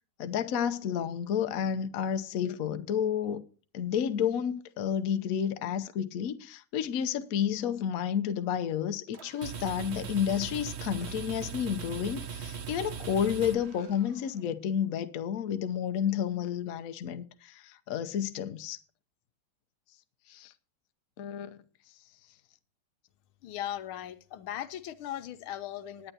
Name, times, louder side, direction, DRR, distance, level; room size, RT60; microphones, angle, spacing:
voice 1, 0.2-3.4 3.7-18.8 20.3-20.5 21.2-21.5, left 8 dB, 60° left, 0.9 m, -31 dB
sound 1, 9.1-14.3, right 7 dB, 45° right, 0.9 m, -40 dB
voice 2, 23.4-26.1, left 12 dB, 90° left, 1.6 m, -38 dB
20.0 x 8.9 x 2.8 m
omnidirectional pair, 2.3 m